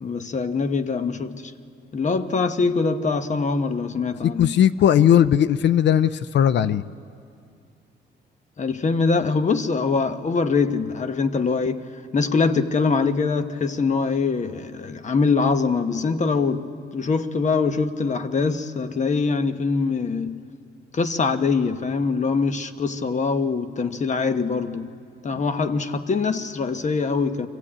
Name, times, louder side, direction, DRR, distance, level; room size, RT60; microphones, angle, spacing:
voice 1, 0.0-1.5 1.9-4.6 8.6-11.9 12.1-20.4 20.9-24.9 25.2-27.5, left 4 dB, 35° left, 1.1 m, -23 dB
voice 2, 4.2-6.8, left 10 dB, 60° left, 0.5 m, -18 dB
24.5 x 15.5 x 8.7 m
cardioid pair, 90°, 20 cm